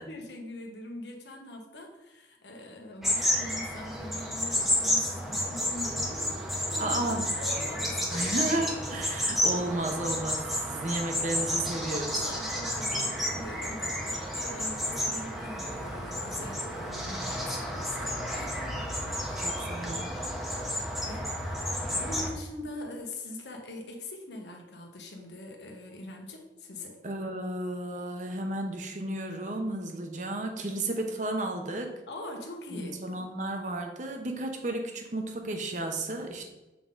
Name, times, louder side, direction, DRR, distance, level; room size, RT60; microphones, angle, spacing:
voice 1, 0.1-7.1 7.4-8.3 12.2-19.5 20.4-27.0 32.1-33.3, left 2 dB, 85° left, 2 dB, 1.1 m, -43 dB
sound 1, 3.0-22.3, equal, ahead, 0.8 m, -31 dB
voice 2, 6.8-7.3 8.1-12.2 19.4-20.1 27.0-31.9 32.7-36.4, right 2 dB, 45° right, 3 dB, 0.8 m, -33 dB
7.1 x 3.8 x 3.8 m, 1.0 s
head